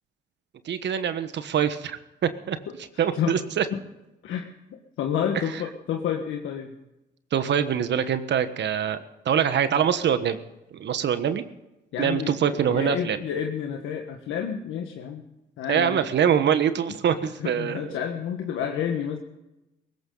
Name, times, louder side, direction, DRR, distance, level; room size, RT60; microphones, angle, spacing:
voice 1, 0.6-2.6 3.0-3.6 7.3-10.4 10.7-11.5 12.0-13.2 15.7-17.9, right 8 dB, 65° right, 11 dB, 1.3 m, -24 dB
voice 2, 2.7-3.4 3.7-3.8 4.2-4.5 5.0-6.7 11.9-15.2 15.6-16.1 16.9-19.2, left 8 dB, 85° left, 3 dB, 1.5 m, -30 dB
20.0 x 17.0 x 3.9 m, 0.95 s
cardioid pair, 90°, 20 cm